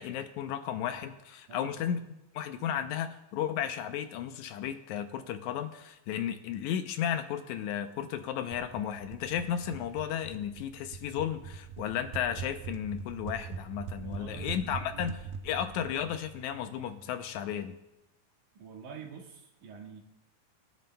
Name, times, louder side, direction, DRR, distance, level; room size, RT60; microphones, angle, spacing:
voice 1, 0.0-2.0 2.3-15.2 15.4-17.7, left 9 dB, 80° left, 8 dB, 1.8 m, -34 dB
voice 2, 1.5-1.8 13.9-15.1 18.6-20.0, right 6 dB, 65° right, -1 dB, 3.1 m, -47 dB
sound 1, 8.5-17.2, right 6 dB, 80° right, 2.1 m, -43 dB
24.0 x 9.2 x 2.2 m, 0.90 s
omnidirectional pair, 3.8 m